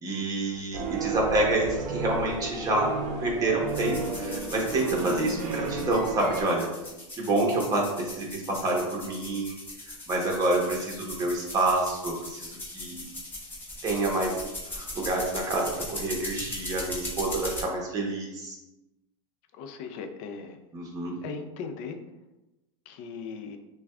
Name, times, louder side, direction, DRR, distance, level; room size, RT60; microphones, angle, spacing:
voice 1, 0.0-6.7 7.1-9.6 10.1-13.1 13.8-18.6 20.7-21.2, right 2 dB, 20° right, -1 dB, 1.0 m, -28 dB
sound 1, 0.7-6.4, right 4 dB, 50° right, 0.7 m, -33 dB
sound 2, 3.7-17.6, left 2 dB, 15° left, 1.1 m, -39 dB
voice 2, 19.5-20.6 21.2-22.0 22.9-23.6, left 5 dB, 45° left, 7 dB, 0.5 m, -38 dB
5.8 x 2.3 x 2.4 m, 0.98 s
supercardioid pair, 135°, 17 cm